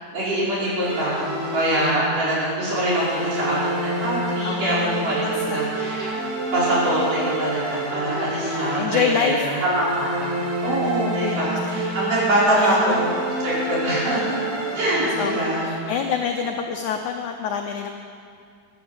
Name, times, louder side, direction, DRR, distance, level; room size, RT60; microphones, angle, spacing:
voice 1, 0.1-6.1 6.5-13.1 13.4-14.5 14.7-15.7, right 1 dB, 50° right, -8 dB, 6.2 m, -24 dB
sound 1, 0.8-2.3 2.7-9.2 9.6-16.0, right 1 dB, 75° right, 4.6 m, -28 dB
voice 2, 4.4-5.7 8.4-9.5 11.2-11.5 12.6-13.0 14.8-17.9, left 7 dB, 85° left, 4 dB, 1.7 m, -27 dB
14.5 x 12.0 x 7.9 m, 2.3 s
omnidirectional pair, 4.6 m